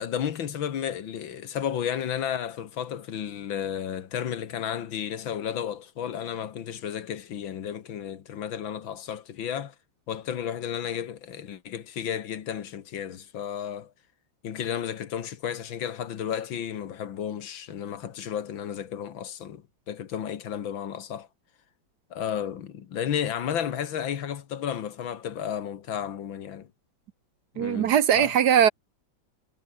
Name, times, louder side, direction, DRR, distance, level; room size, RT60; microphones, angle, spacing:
voice 1, 0.0-9.7 10.1-13.9 14.4-21.3 22.1-26.7 27.5-28.3, left 9 dB, 75° left, 2.2 m, -33 dB
voice 2, 27.6-28.7, right 9 dB, 65° right, 1.3 m, -20 dB
omnidirectional pair, 2.1 m